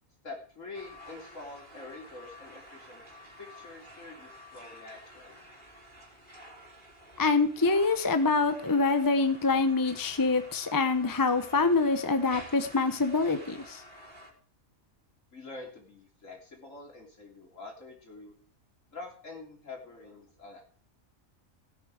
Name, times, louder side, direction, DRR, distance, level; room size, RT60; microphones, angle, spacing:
voice 1, 0.2-5.4 15.3-18.3 18.9-20.6, left 3 dB, 65° left, 1 dB, 3.6 m, -46 dB
sound 1, 0.7-14.3, equal, 35° right, 3.7 m, -50 dB
voice 2, 7.2-13.8, left 3 dB, 15° left, 9 dB, 0.9 m, -25 dB
17.5 x 8.7 x 4.9 m, 0.40 s
omnidirectional pair, 1.4 m